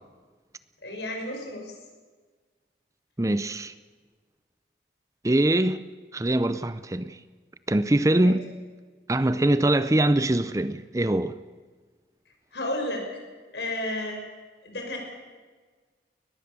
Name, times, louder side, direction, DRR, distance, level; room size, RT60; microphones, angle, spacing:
voice 1, 0.8-1.7 8.2-8.4 12.5-13.1 13.5-14.2 14.6-15.0, left 1 dB, 75° left, 6.1 m, -32 dB
voice 2, 3.2-3.7 5.2-5.9 6.1-7.2 7.7-8.4 9.1-11.4, right 1 dB, 20° right, 0.5 m, -23 dB
22.0 x 20.5 x 6.8 m
head